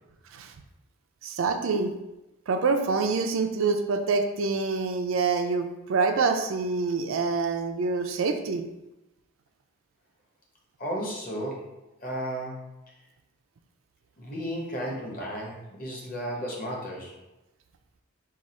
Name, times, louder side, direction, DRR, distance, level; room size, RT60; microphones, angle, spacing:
voice 1, 1.2-1.9 2.5-8.6, right 4 dB, 70° right, 5 dB, 0.4 m, -26 dB
voice 2, 10.8-11.7 12.0-12.6 14.2-17.2, equal, 40° left, -2 dB, 1.0 m, -34 dB
4.8 x 2.4 x 4.2 m, 0.94 s
head